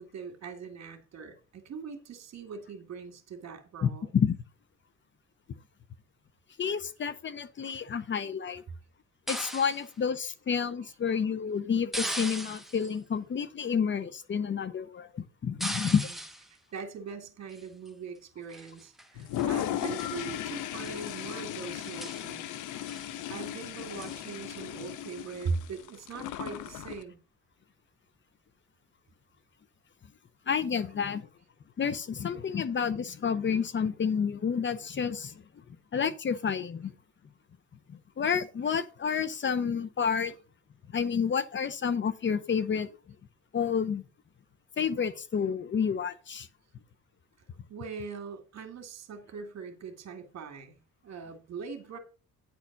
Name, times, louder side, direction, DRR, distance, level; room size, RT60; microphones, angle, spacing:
voice 1, 0.0-4.1 16.0-16.2 16.5-22.4 23.3-27.2 47.7-52.0, right 5 dB, 60° right, 2.1 m, -41 dB
voice 2, 3.8-4.4 6.6-8.6 9.3-16.0 30.5-31.3 31.8-35.4 35.9-36.9 37.9-40.4 40.9-42.9 43.5-44.0 44.8-46.5, left 7 dB, 40° left, 0.7 m, -30 dB
sound 1, 9.3-9.9 11.9-12.9 15.6-16.5 17.5-17.9 18.5-19.1 19.4-19.5 19.8-20.2 20.7-21.1 21.4-21.5 21.8-22.3 22.9-23.1 24.0-24.2, right 1 dB, ahead, 1.1 m, -38 dB
Toilet flush, 19.2-27.0, left 12 dB, 85° left, 0.7 m, -36 dB
9.5 x 4.4 x 5.9 m
cardioid pair, 90°, 30 cm